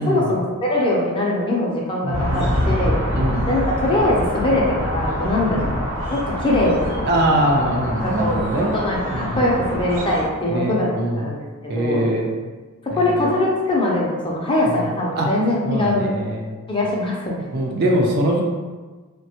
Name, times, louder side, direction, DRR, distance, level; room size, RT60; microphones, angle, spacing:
voice 1, 0.0-3.0 3.5-5.7 6.1-7.0 8.0-10.9 11.2-12.1 13.0-16.1 16.7-17.4, left 1 dB, 25° left, -3 dB, 0.5 m, -22 dB
voice 2, 2.0-3.4 5.5-5.7 7.0-8.7 9.1-9.4 10.5-11.3 11.7-12.3 12.9-13.2 14.7-14.8 15.2-15.3 15.6-16.5 17.5-18.4, right 1 dB, 45° right, -1 dB, 0.4 m, -22 dB
sound 1, 2.1-10.2, equal, 70° right, 0.9 m, -25 dB
3.3 x 2.2 x 2.8 m, 1.3 s
head